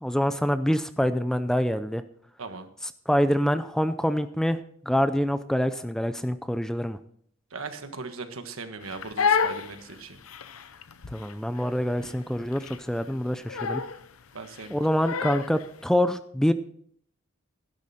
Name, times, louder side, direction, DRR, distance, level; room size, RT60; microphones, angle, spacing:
voice 1, 0.0-2.0 2.8-4.6 4.9-7.0 11.1-13.8 14.7-16.5, equal, 5° left, 11 dB, 0.4 m, -25 dB
voice 2, 7.5-10.2 14.3-14.9, right 4 dB, 80° right, 8 dB, 1.4 m, -39 dB
Crying sobbing, 8.8-15.7, left 6 dB, 90° left, 0.8 m, -30 dB
12.0 x 11.5 x 4.2 m, 0.62 s
head